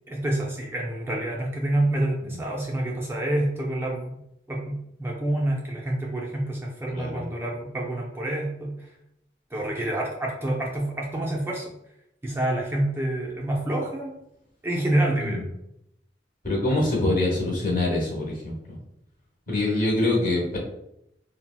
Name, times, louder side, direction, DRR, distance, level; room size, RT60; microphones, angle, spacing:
voice 1, 0.1-4.2 4.5-8.8 9.5-11.7 12.2-14.2 14.6-15.4 19.5-19.9, right 1 dB, 15° right, -2 dB, 0.3 m, -27 dB
voice 2, 6.9-7.3 15.2-15.4 16.4-18.6 19.5-20.6, left 2 dB, 50° left, -2 dB, 0.9 m, -25 dB
3.9 x 2.0 x 2.2 m, 0.81 s
head